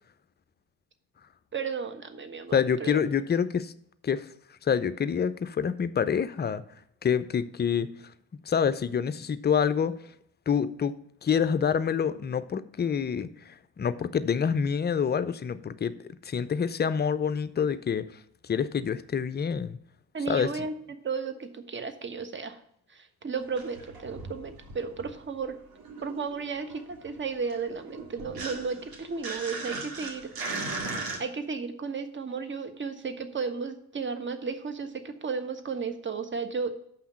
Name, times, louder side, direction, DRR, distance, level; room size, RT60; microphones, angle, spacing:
voice 1, 1.5-3.0 20.1-22.6 22.9-25.6 26.0-30.3 31.2-36.7, right 5 dB, 25° right, 9 dB, 1.2 m, -34 dB
voice 2, 2.5-3.7 4.0-4.3 4.6-6.6 7.0-7.9 8.4-10.0 10.5-11.0 11.2-19.8 20.3-20.7, left 7 dB, 20° left, 13 dB, 0.6 m, -27 dB
sound 1, 23.4-25.3 25.6-31.2, right 3 dB, 50° right, 2.1 m, -38 dB
7.3 x 5.7 x 7.1 m, 0.69 s
hypercardioid pair, 55°, 46 cm